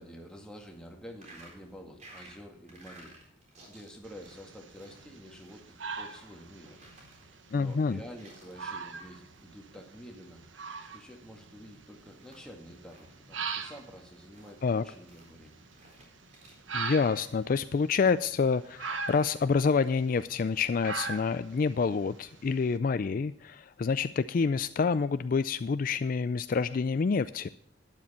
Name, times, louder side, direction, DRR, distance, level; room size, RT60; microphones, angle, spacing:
voice 1, 0.0-3.2 3.7-6.8 7.5-10.4 10.9-15.6, equal, 5° left, 1 dB, 2.0 m, -49 dB
sound 1, 1.0-16.6, right 2 dB, 40° right, 3.8 m, -57 dB
sound 2, 4.0-22.7, right 5 dB, 80° right, 1.3 m, -42 dB
voice 2, 7.5-8.0 14.6-14.8 16.7-27.5, left 5 dB, 45° left, 13 dB, 0.3 m, -27 dB
12.0 x 9.7 x 4.3 m, 0.72 s
head